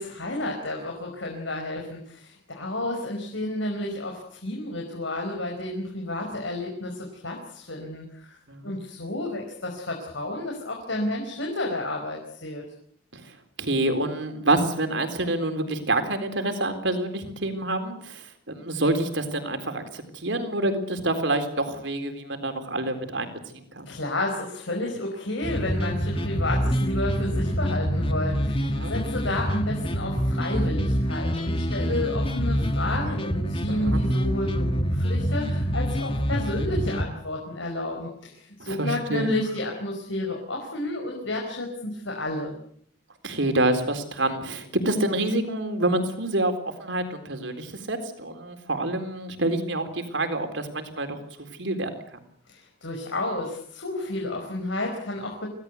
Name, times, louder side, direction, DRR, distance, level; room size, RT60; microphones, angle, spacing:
voice 1, 0.0-8.4 8.6-12.6 23.8-42.5 52.5-55.5, left 1 dB, 75° left, 1 dB, 5.0 m, -31 dB
voice 2, 13.6-23.9 28.7-28.9 33.7-34.0 38.6-39.4 43.2-51.9, right 2 dB, 70° right, 8 dB, 3.9 m, -27 dB
sound 1, 25.4-37.1, equal, 30° left, 1.6 m, -26 dB
26.0 x 17.5 x 8.2 m, 0.65 s
head